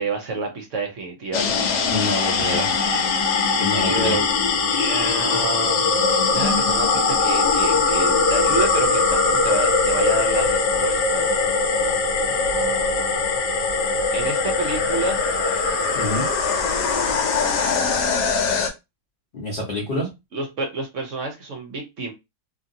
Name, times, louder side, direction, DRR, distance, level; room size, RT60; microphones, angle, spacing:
voice 1, 0.0-1.5 2.5-2.7 3.5-4.3 4.7-11.3 12.3-13.2 14.1-15.2 19.9-22.1, right 3 dB, 60° right, 0.8 m, -29 dB
sound 1, 1.3-18.7, left 4 dB, 80° left, 1.3 m, -21 dB
sound 2, 1.8-14.1, right 2 dB, 5° left, 1.0 m, -40 dB
voice 2, 1.9-2.7 3.6-4.2 15.9-16.3 19.3-20.1, left 1 dB, 45° left, 0.8 m, -26 dB
2.8 x 2.7 x 2.6 m
omnidirectional pair, 1.8 m